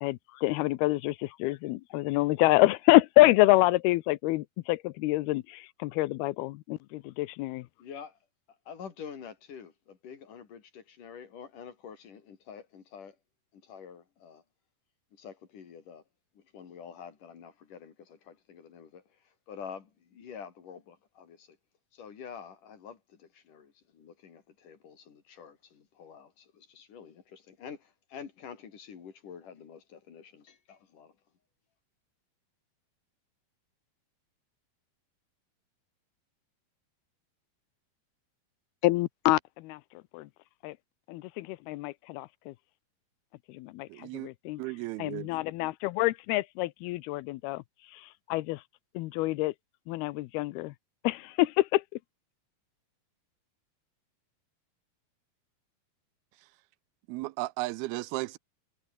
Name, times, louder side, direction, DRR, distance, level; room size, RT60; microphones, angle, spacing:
voice 1, 0.0-7.7 38.8-39.8 40.1-40.3 40.6-40.7 41.1-42.5 43.5-44.6 45.0-47.6 48.3-48.6 49.0-49.5 49.9-50.7 51.0-51.8, left 19 dB, 90° left, 2.7 m, -26 dB
voice 2, 7.8-8.2 8.5-13.2 13.5-14.4 15.1-16.0 16.3-21.6 21.9-31.1, left 7 dB, 55° left, 4.4 m, -47 dB
voice 3, 43.9-44.3 44.6-45.3 56.4-56.5 57.1-58.4, right 20 dB, 85° right, 2.5 m, -35 dB
omnidirectional pair, 4.4 m